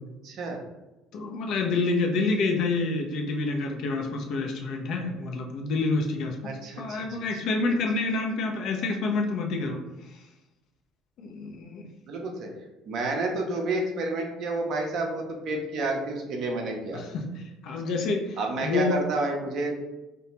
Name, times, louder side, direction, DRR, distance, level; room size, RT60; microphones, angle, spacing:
voice 1, 0.2-0.6 6.4-7.2 12.1-12.5 12.9-17.0 18.4-19.7, right 2 dB, 50° right, 1 dB, 0.5 m, -30 dB
voice 2, 1.1-6.4 6.8-9.8 11.2-11.9 16.9-17.3 17.6-19.0, left 3 dB, 50° left, 2 dB, 0.4 m, -28 dB
2.3 x 2.2 x 2.9 m, 1.0 s
figure-of-eight pair, 55°, 0 cm